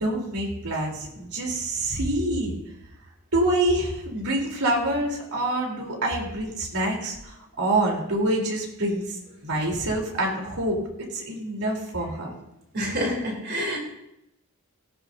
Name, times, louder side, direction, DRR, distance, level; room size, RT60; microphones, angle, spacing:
voice 1, 0.0-2.5 3.3-12.3, right 1 dB, 85° right, -1 dB, 3.7 m, -26 dB
voice 2, 12.7-13.8, equal, 45° right, -1 dB, 3.8 m, -27 dB
18.0 x 14.5 x 2.7 m, 0.86 s
head